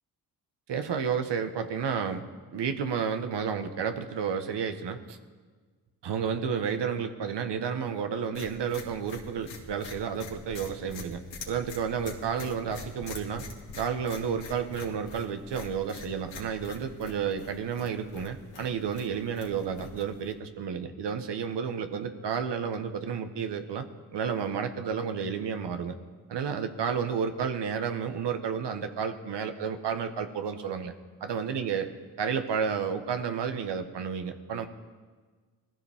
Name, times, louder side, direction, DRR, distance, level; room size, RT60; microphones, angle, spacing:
voice 1, 0.7-2.2 2.5-5.2 6.0-13.4 13.8-23.8 24.1-26.0 26.3-30.9 31.2-31.9 32.2-34.7, right 7 dB, 65° right, 7 dB, 1.4 m, -31 dB
sound 1, 8.3-20.3, left 3 dB, 75° left, 2.4 m, -45 dB
21.0 x 14.5 x 3.6 m, 1.5 s
hypercardioid pair, 40°, 44 cm